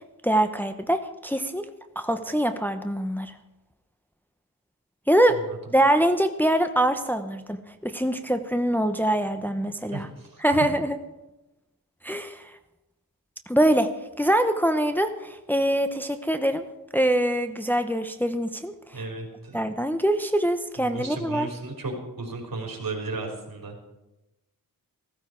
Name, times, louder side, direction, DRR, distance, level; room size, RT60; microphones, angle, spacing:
voice 1, 0.2-1.7 2.0-3.3 5.1-5.4 5.7-7.6 7.8-10.1 10.4-11.0 12.0-12.4 13.5-16.7 16.9-18.7 19.5-21.5, right 1 dB, 5° left, 7 dB, 0.8 m, -24 dB
voice 2, 9.9-10.7 18.9-19.6 20.8-23.7, right 3 dB, 70° right, 1 dB, 3.8 m, -35 dB
15.0 x 14.5 x 4.5 m, 0.98 s
wide cardioid pair, 80°, 36 cm